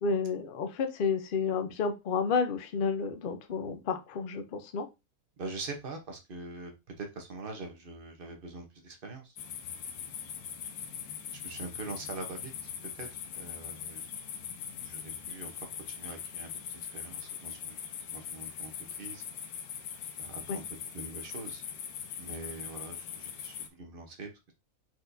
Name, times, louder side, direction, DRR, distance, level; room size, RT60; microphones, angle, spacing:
voice 1, 0.0-4.9 20.5-20.6, left 5 dB, 55° left, 8 dB, 0.6 m, -31 dB
voice 2, 5.4-6.7 7.0-9.4 11.4-12.5 13.0-14.0 14.8-15.5 15.9-17.8 18.1-18.7 19.0-19.2 20.2-20.6 20.9-21.6 22.2-24.5, right 3 dB, 40° right, 3 dB, 1.0 m, -43 dB
sound 1, 9.4-23.7, left 8 dB, 75° left, 1.1 m, -41 dB
4.5 x 4.1 x 2.6 m, 0.24 s
omnidirectional pair, 1.6 m